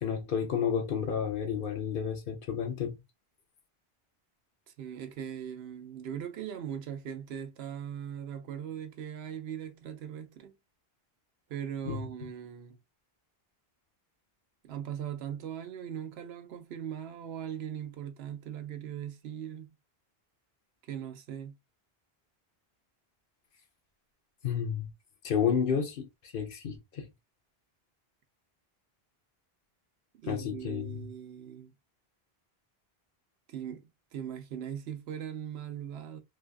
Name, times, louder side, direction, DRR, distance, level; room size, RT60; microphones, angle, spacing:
voice 1, 0.0-3.0 11.9-12.0 24.4-24.9 25.2-27.1 30.3-31.1, left 7 dB, 65° left, 0.8 m, -31 dB
voice 2, 4.8-10.5 11.5-12.8 14.6-19.7 20.9-21.6 30.2-31.7 33.5-36.2, right 9 dB, 90° right, 0.8 m, -40 dB
3.2 x 2.3 x 2.3 m
omnidirectional pair, 1.0 m